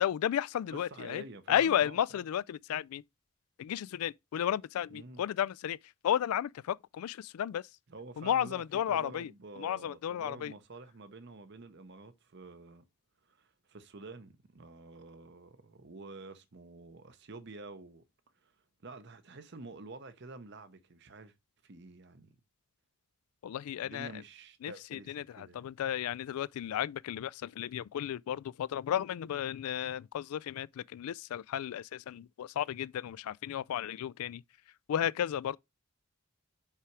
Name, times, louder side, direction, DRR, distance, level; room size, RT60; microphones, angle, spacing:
voice 1, 0.0-3.0 3.6-5.8 6.0-7.6 8.2-9.3 9.6-10.5 23.4-24.1 24.6-34.4 34.9-35.6, left 10 dB, 85° left, 0.3 m, -33 dB
voice 2, 0.7-2.2 4.9-5.2 7.9-12.8 13.2-18.0 18.4-18.5 18.8-21.3 21.6-22.4 23.8-25.6, right 3 dB, 50° right, 0.8 m, -49 dB
5.7 x 4.9 x 4.6 m
head